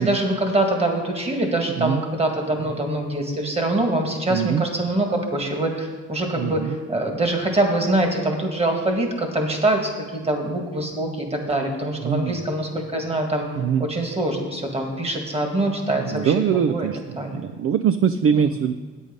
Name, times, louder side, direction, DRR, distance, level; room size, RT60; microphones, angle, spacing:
voice 1, 0.0-13.5 13.8-16.9 17.2-17.4 18.3-18.4, right 1 dB, 20° right, 3 dB, 1.8 m, -24 dB
voice 2, 4.3-4.6 6.3-6.7 12.0-12.4 13.6-13.9 15.9-17.0 17.3-18.7, right 8 dB, 50° right, 11 dB, 0.4 m, -22 dB
8.8 x 8.1 x 5.2 m, 1.4 s
cardioid pair, 90°, 30 cm